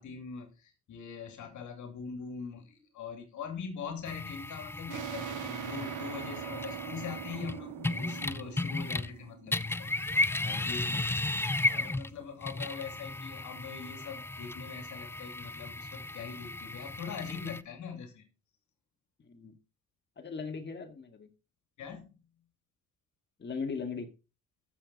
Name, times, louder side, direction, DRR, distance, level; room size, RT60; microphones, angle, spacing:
voice 1, 0.0-11.1 11.6-18.3 21.8-22.2, left 6 dB, 75° left, 5 dB, 2.7 m, -42 dB
sound 1, 4.1-9.2 9.5-17.6, left 2 dB, 10° left, 0.5 m, -35 dB
sound 2, 4.9-10.2, right 11 dB, 80° right, 0.9 m, -42 dB
voice 2, 20.2-21.3 23.4-24.1, left 5 dB, 35° left, 5 dB, 2.1 m, -38 dB
14.0 x 7.0 x 4.1 m, 0.32 s
cardioid pair, 90°, 30 cm